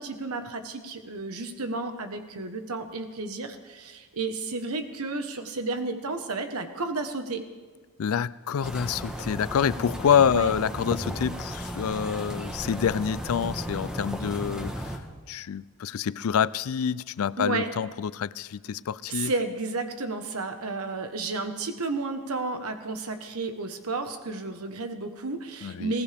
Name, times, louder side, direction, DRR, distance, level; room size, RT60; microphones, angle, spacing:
voice 1, 0.0-7.4 10.3-10.5 17.4-17.7 19.1-26.0, right 3 dB, 85° right, 1.3 m, -32 dB
voice 2, 8.0-14.8 15.3-19.3 25.6-25.9, left 8 dB, 75° left, 0.4 m, -27 dB
sound 1, 8.6-15.0, equal, 5° right, 1.1 m, -35 dB
20.0 x 17.0 x 3.5 m
head